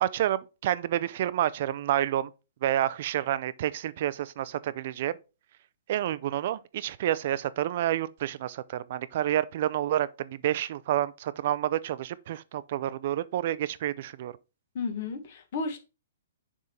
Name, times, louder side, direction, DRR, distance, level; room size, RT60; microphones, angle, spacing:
voice 1, 0.0-2.3 2.6-5.2 5.9-14.3, right 12 dB, 50° right, 0.4 m, -29 dB
voice 2, 14.7-15.8, left 4 dB, 55° left, 1.4 m, -33 dB
6.5 x 3.6 x 4.3 m
hypercardioid pair, 140°, 0 cm